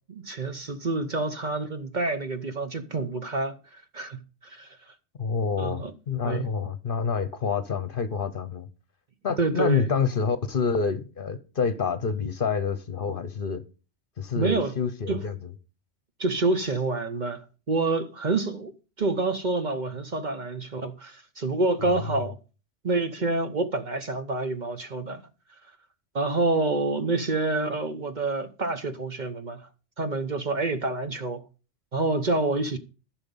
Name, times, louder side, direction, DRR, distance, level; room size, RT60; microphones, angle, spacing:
voice 1, 0.1-4.7 5.6-5.9 6.2-6.4 9.4-9.9 14.3-14.8 15.1-15.2 16.2-17.4 17.7-18.7 19.0-22.4 22.8-25.2 26.1-29.6 30.0-31.4 31.9-32.8, right 3 dB, 40° right, 0.9 m, -27 dB
voice 2, 5.2-8.7 9.2-13.6 14.2-15.4 21.9-22.2, left 5 dB, 50° left, 1.0 m, -27 dB
14.5 x 6.2 x 5.4 m
omnidirectional pair, 1.3 m